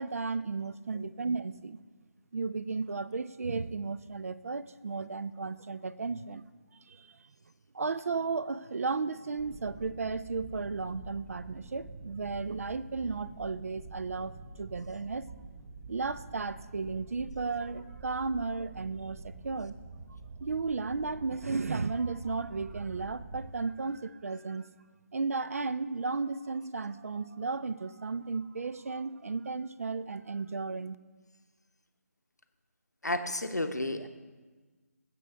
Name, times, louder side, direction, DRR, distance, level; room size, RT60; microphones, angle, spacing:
voice 1, 0.0-1.8 2.3-6.5 6.9-7.2 7.7-15.3 15.9-19.8 20.4-24.7 25.1-31.0, right 4 dB, 60° right, 16 dB, 0.4 m, -34 dB
sound 1, 9.4-23.5, right 3 dB, 30° right, 0.9 m, -47 dB
voice 2, 33.0-34.1, left 1 dB, 90° left, 7 dB, 0.8 m, -32 dB
15.0 x 7.7 x 3.4 m, 1.4 s
figure-of-eight pair, 150°, 9 cm